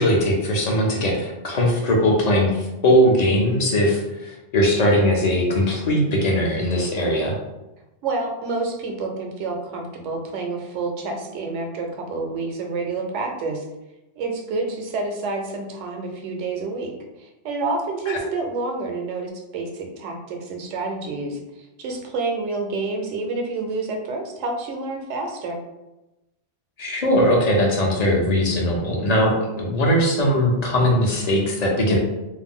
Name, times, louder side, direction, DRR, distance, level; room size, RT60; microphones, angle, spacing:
voice 1, 0.0-7.3 18.1-18.2 26.8-32.0, equal, 45° left, -1 dB, 0.5 m, -20 dB
voice 2, 8.0-13.6 14.2-16.9 17.2-25.6, right 3 dB, 80° right, 2 dB, 0.9 m, -28 dB
2.5 x 2.1 x 3.6 m, 0.97 s
omnidirectional pair, 1.2 m